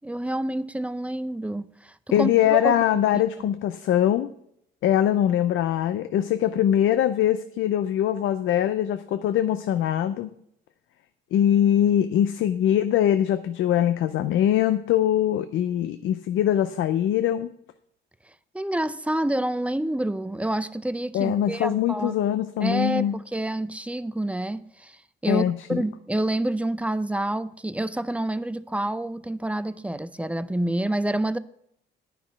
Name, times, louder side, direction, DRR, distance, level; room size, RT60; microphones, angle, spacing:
voice 1, 0.0-3.0 18.5-22.2 22.6-31.4, right 1 dB, 5° right, 0.5 m, -28 dB
voice 2, 2.1-4.3 4.8-10.3 11.3-17.5 21.1-23.1 25.3-25.8, left 11 dB, 80° left, 0.5 m, -22 dB
9.7 x 5.9 x 7.2 m
cardioid pair, 90°, 20 cm